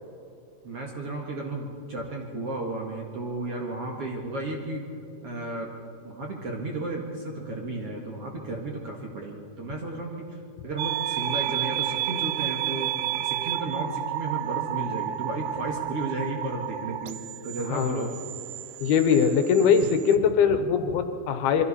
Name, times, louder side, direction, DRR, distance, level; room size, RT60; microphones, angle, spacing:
voice 1, 0.6-4.9 5.2-5.7 6.0-12.9 13.2-18.1, right 2 dB, 50° right, 0 dB, 2.1 m, -33 dB
sound 1, 10.8-20.2, right 13 dB, 80° right, 2.4 m, -31 dB
voice 2, 17.7-18.1 18.8-21.6, left 6 dB, 80° left, 8 dB, 2.9 m, -22 dB
27.0 x 22.5 x 4.2 m, 2.7 s
omnidirectional pair, 4.5 m